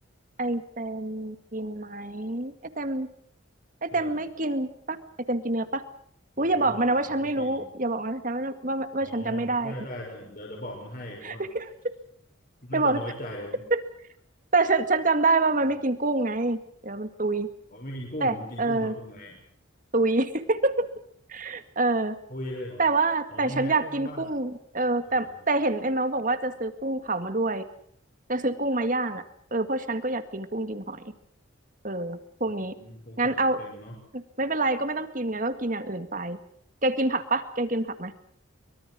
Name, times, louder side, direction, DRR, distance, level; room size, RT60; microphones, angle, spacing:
voice 1, 0.4-3.1 3.8-5.0 5.3-5.8 6.4-9.7 11.2-11.7 12.7-13.0 13.7-13.8 14.5-17.5 18.2-18.9 19.9-20.9 21.3-22.2 22.8-27.6 28.3-29.2 29.5-31.1 31.8-32.8 33.2-33.6 34.1-36.4 36.8-38.1, right 2 dB, 40° right, 10 dB, 2.0 m, -26 dB
voice 2, 6.4-7.6 9.0-11.5 12.6-13.6 15.6-15.7 17.7-19.4 22.3-22.9 23.3-24.3 25.1-25.5 32.4-34.0, equal, 45° left, -1 dB, 5.6 m, -39 dB
24.5 x 23.0 x 6.3 m, 0.64 s
head